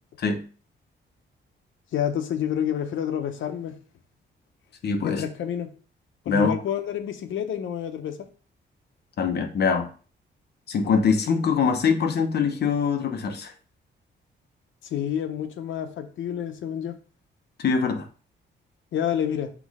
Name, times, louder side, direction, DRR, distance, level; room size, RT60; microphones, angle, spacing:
voice 1, 1.9-3.8 5.0-5.7 6.2-8.2 14.8-17.0 18.9-19.5, left 9 dB, 90° left, 8 dB, 0.8 m, -28 dB
voice 2, 4.8-5.2 6.3-6.6 9.2-9.9 10.7-13.5 17.6-18.0, left 5 dB, 55° left, 5 dB, 0.9 m, -23 dB
6.2 x 3.1 x 4.8 m, 0.39 s
wide cardioid pair, 165°, 20 cm